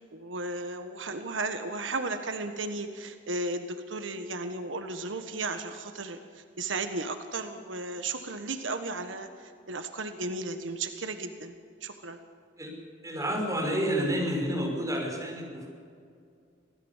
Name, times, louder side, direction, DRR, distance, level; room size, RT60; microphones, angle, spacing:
voice 1, 0.0-11.5 11.8-12.2, right 3 dB, 90° right, 7 dB, 1.5 m, -35 dB
voice 2, 13.0-15.7, equal, 20° right, -1 dB, 5.8 m, -29 dB
26.5 x 17.5 x 7.4 m, 2.3 s
head